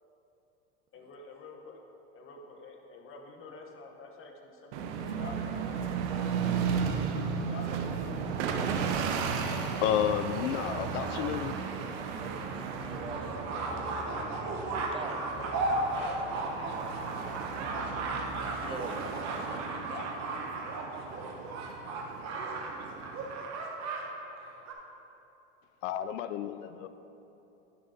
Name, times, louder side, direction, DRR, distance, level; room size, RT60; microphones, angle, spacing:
voice 1, 0.9-1.8 2.1-5.7 7.0-8.0 15.3-15.6 15.9-16.9 17.7-20.1, left 3 dB, 35° left, 2 dB, 1.1 m, -48 dB
sound 1, 4.7-23.3, right 6 dB, 65° right, 0.8 m, -35 dB
sound 2, 7.9-9.5 10.3-10.4 10.7-10.8 11.1-11.2 11.6-11.7 12.2-24.0 24.3-24.7, right 2 dB, 45° right, 1.1 m, -36 dB
sound 3, 8.0-19.1, left 2 dB, 10° left, 0.9 m, -49 dB
voice 2, 9.3-11.5 25.8-26.9, left 10 dB, 75° left, 11 dB, 0.5 m, -31 dB
voice 3, 11.0-14.6 14.9-15.2 15.7-16.3 18.6-18.9, right 4 dB, 15° right, 6 dB, 0.5 m, -45 dB
10.5 x 6.7 x 2.8 m, 2.9 s
hypercardioid pair, 90°, 37 cm